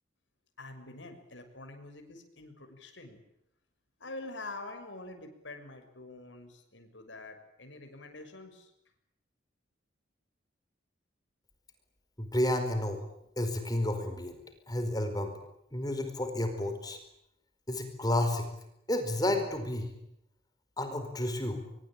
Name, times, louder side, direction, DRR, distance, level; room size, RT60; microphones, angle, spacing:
voice 1, 0.6-3.2 4.0-8.7, left 2 dB, 75° left, 6 dB, 6.6 m, -46 dB
voice 2, 12.2-13.0 13.4-14.4 14.7-15.3 15.7-17.0 17.7-18.5 18.9-19.9 20.8-21.6, left 1 dB, 20° left, 7 dB, 4.7 m, -31 dB
25.0 x 23.5 x 8.9 m, 0.79 s
head